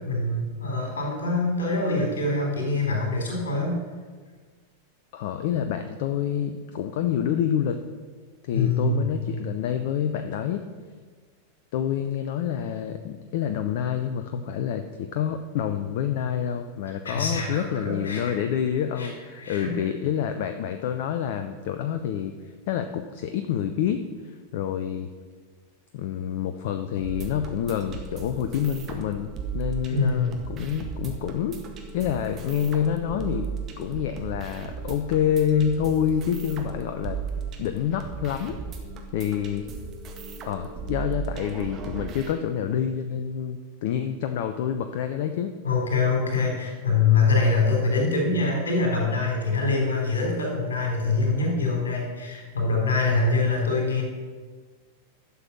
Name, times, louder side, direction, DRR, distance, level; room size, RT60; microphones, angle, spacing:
voice 1, 0.1-3.8 8.5-9.1 17.0-18.3 19.0-19.1 19.4-19.7 29.9-30.4 45.6-54.0, left 3 dB, 65° left, 0 dB, 3.9 m, -24 dB
voice 2, 5.1-7.8 8.4-10.6 11.7-22.3 22.7-25.1 25.9-31.6 31.9-33.5 33.8-37.2 37.6-38.6 39.1-39.7 40.4-45.5, left 9 dB, 50° left, 7 dB, 0.7 m, -27 dB
sound 1, 27.0-42.3, right 5 dB, 30° right, 1.7 m, -36 dB
11.5 x 7.1 x 6.0 m, 1.5 s
figure-of-eight pair, 90°, 0 cm